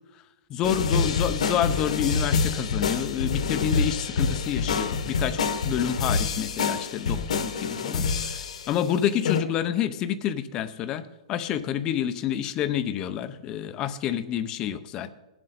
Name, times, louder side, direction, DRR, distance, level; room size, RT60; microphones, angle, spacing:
voice 1, 0.5-15.1, left 9 dB, 20° left, 11 dB, 0.6 m, -28 dB
sound 1, 0.6-8.8 9.3-9.4, left 5 dB, 70° left, 1.4 m, -27 dB
19.0 x 7.6 x 4.1 m, 1.1 s
hypercardioid pair, 175°, 4 cm